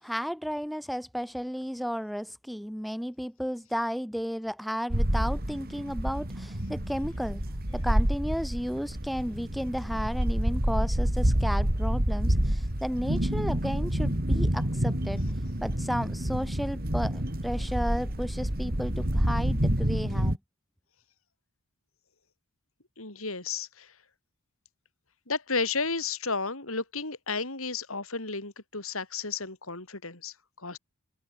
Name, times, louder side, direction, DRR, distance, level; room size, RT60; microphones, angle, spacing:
voice 1, 0.0-7.4 7.7-15.2 15.6-20.4, equal, ahead, 1.8 m, -33 dB
sound 1, 4.9-20.4, equal, 45° right, 3.6 m, -28 dB
voice 2, 23.0-23.9 25.3-30.8, left 4 dB, 70° left, 6.0 m, -33 dB
head